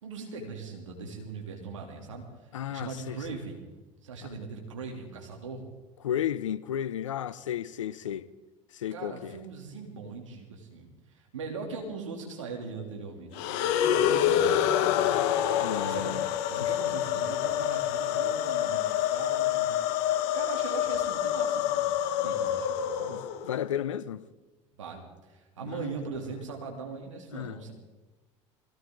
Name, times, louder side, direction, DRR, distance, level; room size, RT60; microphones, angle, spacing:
voice 1, 0.0-3.7 4.0-5.6 8.9-15.2 15.8-16.2 16.5-19.7 20.3-23.2 24.7-27.7, right 4 dB, 85° right, 3.0 m, -40 dB
voice 2, 2.5-3.2 6.0-8.3 8.7-9.4 15.5-16.3 16.6-16.7 23.1-24.2 25.6-25.9 26.4-26.5 27.3-27.6, left 10 dB, 85° left, 0.6 m, -33 dB
sound 1, 13.3-23.6, left 10 dB, 65° left, 1.2 m, -27 dB
22.5 x 16.5 x 3.9 m
hypercardioid pair, 70°, 16 cm